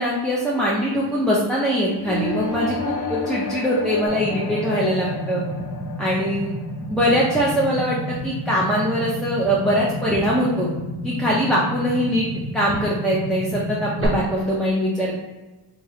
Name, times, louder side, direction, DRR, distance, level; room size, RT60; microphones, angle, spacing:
voice 1, 0.0-5.4 6.0-6.5 6.9-10.7 11.0-12.3 12.5-15.1, equal, ahead, -6 dB, 0.7 m, -22 dB
sound 1, 2.0-7.9, left 5 dB, 45° left, 0.7 m, -31 dB
sound 2, 4.1-14.1, equal, 30° right, 0.8 m, -31 dB
3.5 x 2.7 x 3.4 m, 1.1 s
cardioid pair, 90°, 44 cm